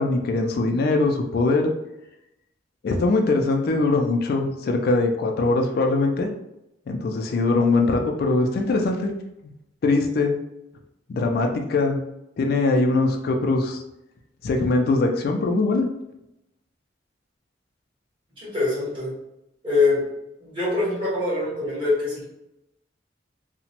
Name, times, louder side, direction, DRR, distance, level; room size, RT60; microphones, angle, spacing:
voice 1, 0.0-1.7 2.8-6.3 6.9-9.1 9.8-10.4 11.1-12.0 12.4-13.8 14.4-15.9, left 3 dB, 55° left, 3 dB, 0.3 m, -22 dB
voice 2, 18.4-19.1 19.6-20.0 20.4-22.2, left 3 dB, 30° right, -8 dB, 1.5 m, -23 dB
2.8 x 2.1 x 2.8 m, 0.88 s
head